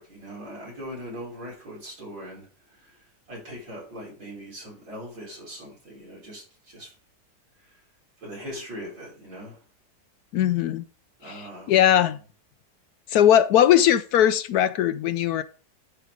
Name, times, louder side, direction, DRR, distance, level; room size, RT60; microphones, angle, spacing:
voice 1, 0.0-2.5 3.3-6.9 8.2-9.6 11.2-11.7, equal, 90° right, 5.6 m, -40 dB
voice 2, 10.3-10.8 11.2-12.2 13.1-15.4, left 10 dB, 70° left, 1.0 m, -20 dB
10.5 x 4.9 x 5.0 m
omnidirectional pair, 1.9 m